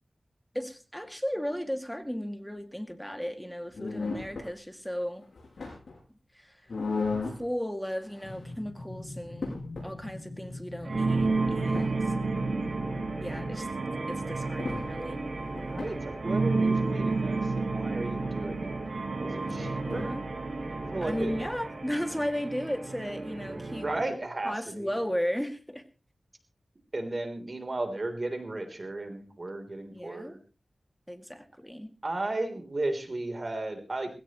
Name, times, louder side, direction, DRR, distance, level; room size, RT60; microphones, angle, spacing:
voice 1, 0.5-5.2 6.3-6.6 7.4-9.6 9.8-12.0 13.2-13.7 14.1-15.2 19.9-20.2 21.0-23.9 24.4-25.8 29.9-30.4 31.1-31.9, equal, 5° left, 7 dB, 2.2 m, -35 dB
sound 1, 3.7-4.5 5.2-6.0 6.7-7.5 7.9-8.5 8.9-9.0 9.3-9.9 11.2-11.9 14.1-14.2 14.6-14.9 15.2-16.0 19.5-20.1, left 4 dB, 85° left, 7.1 m, -35 dB
sound 2, 8.2-13.6, left 2 dB, 50° left, 4.6 m, -43 dB
sound 3, 10.8-24.1, right 3 dB, 75° right, 5.1 m, -31 dB
voice 2, 15.7-18.8 19.2-20.2 20.9-21.5 23.8-25.0 26.9-30.4 32.0-34.1, right 2 dB, 50° right, 7 dB, 3.4 m, -34 dB
19.5 x 17.0 x 3.1 m, 0.31 s
wide cardioid pair, 60°, 0 cm